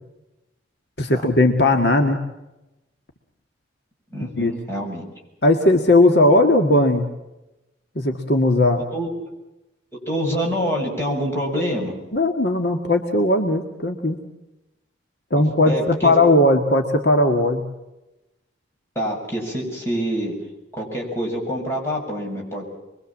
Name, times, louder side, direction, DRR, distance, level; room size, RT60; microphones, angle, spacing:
voice 1, 1.0-2.2 4.4-4.5 5.4-7.1 8.0-8.8 12.1-14.2 15.3-17.6, left 1 dB, 60° left, 4 dB, 1.9 m, -17 dB
voice 2, 4.1-5.0 8.9-9.1 10.1-11.9 15.6-16.1 19.0-20.3 20.7-22.7, equal, 15° left, -2 dB, 7.3 m, -26 dB
26.0 x 22.5 x 7.4 m, 0.96 s
head